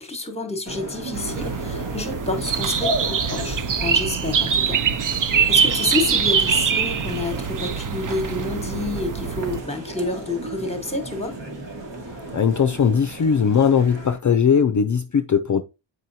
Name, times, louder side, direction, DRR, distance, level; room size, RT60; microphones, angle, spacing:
voice 1, 0.0-11.4, left 2 dB, 15° left, 1.2 m, -29 dB
sound 1, 0.6-14.2, right 2 dB, 60° right, 1.7 m, -34 dB
sound 2, 1.1-9.6, right 6 dB, 40° right, 0.5 m, -23 dB
voice 2, 12.3-15.6, left 7 dB, 40° left, 0.4 m, -19 dB
7.6 x 4.9 x 2.7 m
wide cardioid pair, 110°, 48 cm